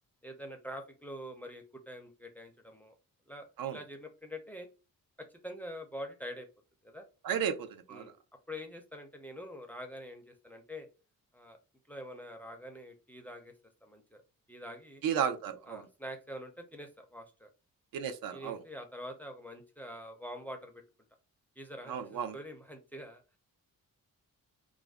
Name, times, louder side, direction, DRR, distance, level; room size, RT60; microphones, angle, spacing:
voice 1, 0.2-2.9 3.3-4.7 5.2-6.5 6.8-7.0 7.9-8.2 8.5-10.9 11.3-11.6 11.9-13.5 13.8-14.2 14.5-15.0 15.7-17.5 18.3-20.8 21.6-23.2, equal, 5° left, 5 dB, 0.4 m, -45 dB
voice 2, 7.2-8.1 15.0-15.9 17.9-18.6 21.9-22.4, right 8 dB, 80° right, 8 dB, 0.5 m, -34 dB
2.5 x 2.1 x 3.3 m, 0.32 s
wide cardioid pair, 135°, 34 cm